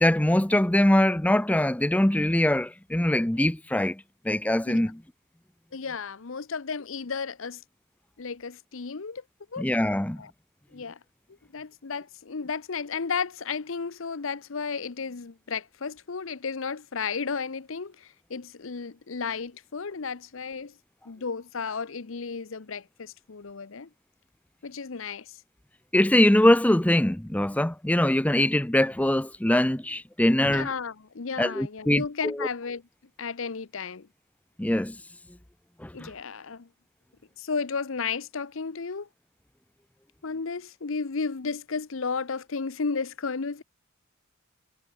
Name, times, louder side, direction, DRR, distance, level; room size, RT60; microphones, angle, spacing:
voice 1, 0.0-5.0 9.6-10.2 25.9-30.7 31.4-32.5 34.6-35.0 35.8-36.1, left 1 dB, 5° left, 0.6 m, -23 dB
voice 2, 5.7-7.6 8.2-9.2 9.5-9.6 10.2-10.3 10.7-11.0 11.5-20.8 21.0-23.9 24.6-25.4 30.5-32.8 33.2-34.1 35.9-36.7 37.4-39.1 40.2-43.6, left 5 dB, 65° left, 0.8 m, -33 dB
head